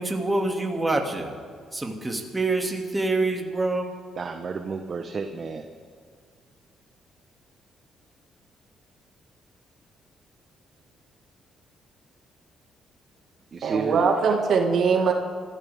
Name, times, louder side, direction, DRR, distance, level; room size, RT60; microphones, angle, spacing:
voice 1, 0.0-1.3 1.7-3.9, right 2 dB, 15° right, 1 dB, 2.5 m, -26 dB
voice 2, 4.2-5.7 13.5-14.4 15.0-15.1, right 5 dB, 45° right, 6 dB, 1.1 m, -32 dB
voice 3, 13.6-15.1, right 5 dB, 65° right, 2 dB, 2.0 m, -21 dB
26.0 x 15.0 x 3.7 m, 2.1 s
cardioid pair, 90°, 0 cm